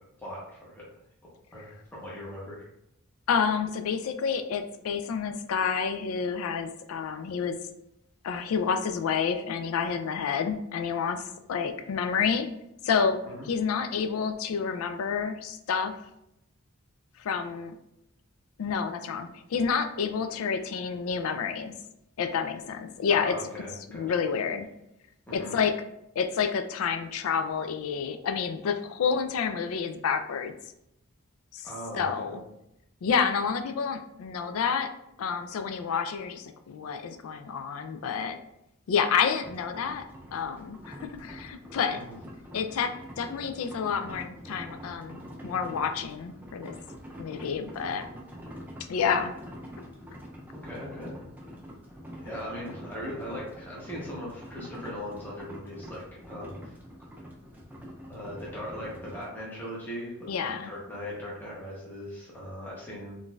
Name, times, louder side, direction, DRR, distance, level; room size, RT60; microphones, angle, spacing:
voice 1, 0.2-0.8 1.5-2.7 13.3-13.5 23.1-24.1 25.3-25.6 31.6-32.4 41.9-42.2 50.5-51.1 52.2-56.7 58.1-63.2, equal, 10° left, -7 dB, 0.7 m, -39 dB
voice 2, 3.3-7.6 8.2-11.2 11.5-12.5 12.8-16.0 17.2-17.7 18.6-21.7 22.2-23.3 23.9-24.7 25.3-25.7 26.2-30.5 31.5-31.7 31.9-32.4 33.0-34.9 35.2-38.4 38.9-40.1 40.3-42.0 42.5-46.7 47.2-48.1 48.9-49.3 49.8-49.9 60.3-60.7, left 6 dB, 75° left, 8 dB, 0.3 m, -29 dB
sound 1, 39.4-59.3, equal, 10° right, 0.3 m, -45 dB
3.8 x 2.6 x 2.2 m, 0.83 s
head